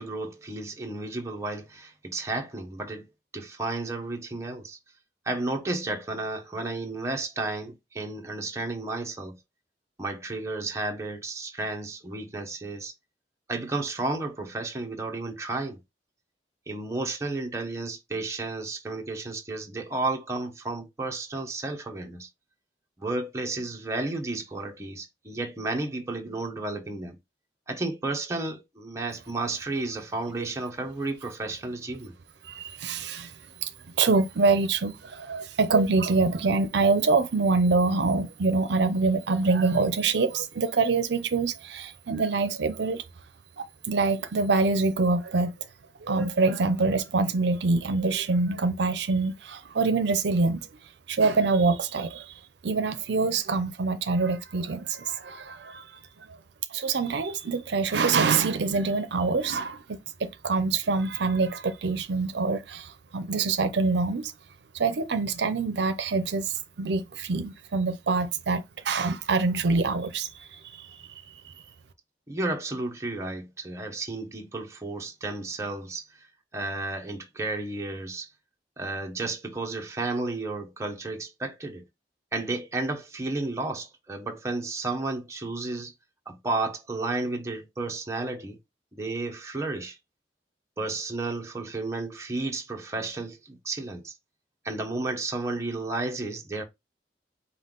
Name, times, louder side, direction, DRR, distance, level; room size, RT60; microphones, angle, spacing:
voice 1, 0.0-3.1 3.3-4.8 5.2-9.4 10.0-12.9 13.5-15.8 16.7-22.3 23.0-27.2 27.7-32.1 72.3-76.3 76.5-78.3 78.8-81.8 82.3-85.9 86.3-88.6 88.9-90.0 90.8-94.1 94.6-96.6, right 2 dB, 15° right, 0.8 m, -32 dB
voice 2, 32.4-33.3 33.6-33.7 34.0-43.0 43.6-45.5 46.0-50.7 51.1-52.3 52.6-56.0 56.7-64.3 64.7-71.5, right 4 dB, 70° right, 0.6 m, -25 dB
5.4 x 2.3 x 3.8 m
head